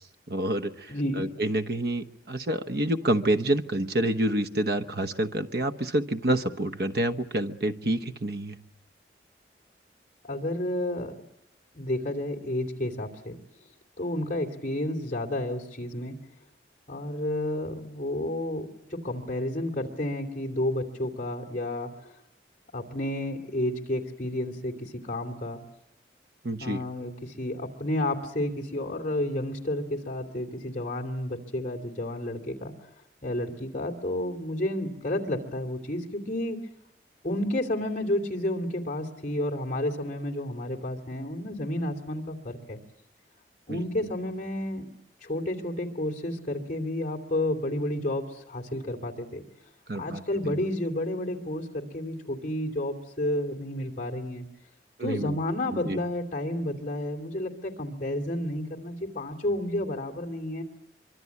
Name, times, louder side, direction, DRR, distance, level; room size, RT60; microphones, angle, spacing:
voice 1, 0.3-8.6 26.4-26.8 43.7-43.8 49.9-50.6 55.0-55.4 55.7-56.0, right 1 dB, 60° right, 9 dB, 1.1 m, -28 dB
voice 2, 0.9-1.3 10.2-11.1 11.7-13.4 14.0-16.2 16.9-22.1 22.7-25.6 26.6-32.7 33.2-36.6 37.2-42.8 43.7-44.9 45.2-49.4 49.9-54.4 55.0-60.6, left 1 dB, 40° left, 4 dB, 2.8 m, -31 dB
24.0 x 24.0 x 8.4 m, 0.79 s
head